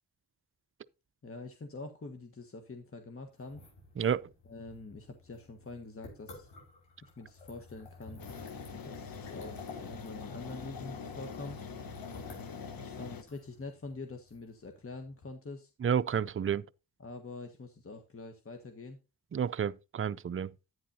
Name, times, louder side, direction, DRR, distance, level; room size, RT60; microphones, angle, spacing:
voice 1, 1.2-3.6 4.4-6.5 7.0-8.2 8.8-11.6 12.8-15.7 17.0-19.0, left 3 dB, 30° left, 1.5 m, -45 dB
sound 1, 3.4-15.3, left 3 dB, 75° left, 5.5 m, -53 dB
voice 2, 4.0-4.3 15.8-16.6 19.3-20.5, right 8 dB, 30° right, 0.5 m, -30 dB
sound 2, 8.2-13.2, left 5 dB, 50° left, 1.4 m, -43 dB
10.0 x 9.7 x 2.8 m
supercardioid pair, 45°, 44 cm